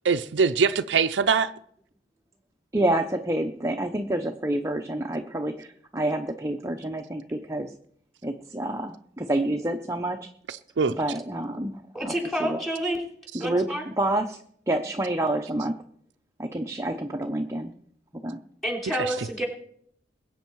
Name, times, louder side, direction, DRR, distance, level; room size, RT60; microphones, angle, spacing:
voice 1, 0.0-1.5 10.5-10.9 19.0-19.1, right 5 dB, 75° right, 0.5 m, -23 dB
voice 2, 2.7-7.7 8.2-10.3 10.9-12.1 12.4-12.6 13.3-14.4 14.7-15.8 16.4-17.7 18.2-18.4, right 1 dB, 15° right, 0.7 m, -28 dB
voice 3, 11.9-13.0 13.4-13.8 18.6-19.5, equal, ahead, 3.2 m, -29 dB
21.0 x 8.4 x 4.6 m
head